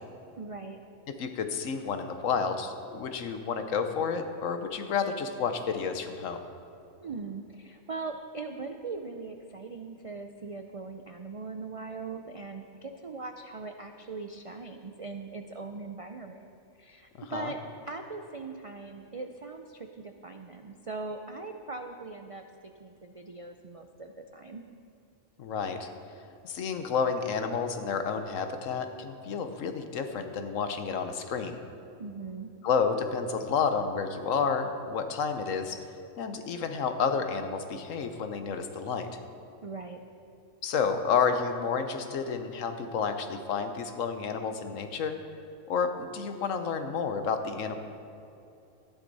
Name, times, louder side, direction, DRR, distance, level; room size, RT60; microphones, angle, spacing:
voice 1, 0.4-0.8 7.0-16.5 16.8-22.4 22.8-24.6 32.0-32.5 39.6-40.0, right 3 dB, 60° right, 5 dB, 0.3 m, -40 dB
voice 2, 1.2-6.4 17.3-17.5 25.4-25.9 26.4-31.6 32.6-35.8 36.2-39.1 40.6-45.2 45.7-47.8, left 6 dB, 85° left, 7 dB, 1.2 m, -30 dB
13.5 x 11.0 x 4.1 m, 2.7 s
omnidirectional pair, 1.3 m